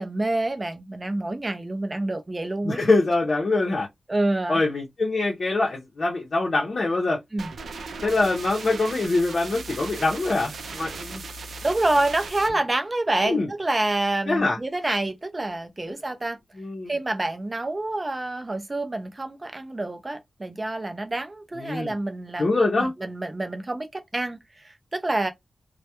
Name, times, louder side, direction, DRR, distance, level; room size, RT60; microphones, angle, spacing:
voice 1, 0.0-2.8 4.1-4.6 7.3-7.5 11.6-16.4 16.9-22.5 22.8-25.3, right 2 dB, 25° right, 0.4 m, -27 dB
voice 2, 2.6-3.9 4.5-7.2 8.0-11.2 13.3-13.5 14.3-14.6 16.6-16.9 21.6-21.9 22.4-22.9, left 2 dB, 45° left, 0.6 m, -24 dB
sound 1, 7.4-12.5, right 3 dB, 85° right, 0.4 m, -37 dB
2.2 x 2.0 x 2.8 m
wide cardioid pair, 150°, 0 cm